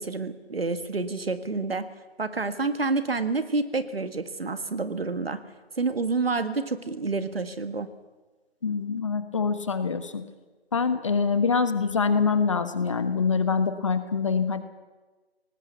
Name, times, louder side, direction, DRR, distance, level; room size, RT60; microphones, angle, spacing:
voice 1, 0.0-1.8 2.2-5.4 5.8-7.9, right 3 dB, 65° right, 11 dB, 1.8 m, -28 dB
voice 2, 8.6-10.2 10.7-14.6, left 5 dB, 30° left, 11 dB, 1.2 m, -25 dB
19.0 x 19.0 x 8.2 m, 1.3 s
figure-of-eight pair, 160°, 32 cm